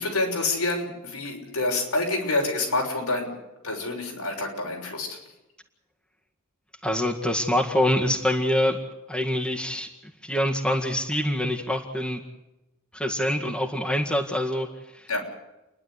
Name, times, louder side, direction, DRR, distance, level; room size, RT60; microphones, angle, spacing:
voice 1, 0.0-3.3 3.6-5.2 15.1-15.2, left 2 dB, 90° left, 0 dB, 6.7 m, -27 dB
voice 2, 6.8-8.8 9.1-12.2 12.9-15.1, left 1 dB, 5° left, 1 dB, 1.9 m, -25 dB
29.5 x 11.5 x 9.9 m, 0.96 s
head